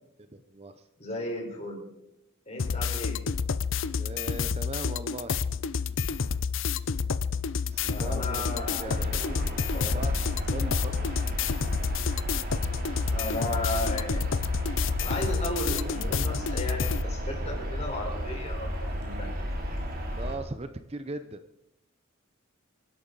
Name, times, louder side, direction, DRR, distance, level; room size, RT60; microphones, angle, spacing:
voice 1, 0.3-0.7 4.0-5.4 7.7-9.6 9.9-10.2 10.5-11.1 20.2-21.4, right 2 dB, 30° right, 10 dB, 0.7 m, -39 dB
voice 2, 1.0-1.9 2.5-3.2 7.9-10.1 13.1-14.2 15.0-19.3, left 1 dB, 30° left, 1 dB, 4.4 m, -35 dB
sound 1, 2.6-17.0, left 6 dB, 60° left, 0.6 m, -29 dB
sound 2, 7.7-20.4, equal, 45° right, 3.0 m, -33 dB
27.0 x 11.5 x 4.0 m, 0.84 s
head